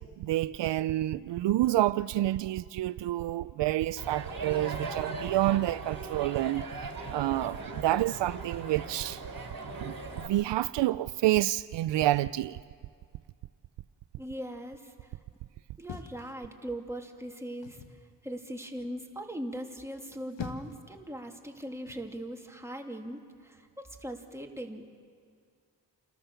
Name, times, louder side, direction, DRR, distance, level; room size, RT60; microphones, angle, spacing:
voice 1, 0.2-6.6 7.1-9.2 9.8-12.6, right 15 dB, 75° right, 0.5 m, -28 dB
Crowd, 4.0-10.3, right 3 dB, 50° right, 3.5 m, -39 dB
voice 2, 14.2-15.1 15.8-17.8 18.2-24.9, right 1 dB, 5° right, 2.7 m, -40 dB
sound 1, 15.8-16.9 17.6-18.0 20.0-20.9 21.8-22.1, left 6 dB, 80° left, 1.4 m, -43 dB
29.0 x 13.5 x 6.9 m
supercardioid pair, 45°, 43 cm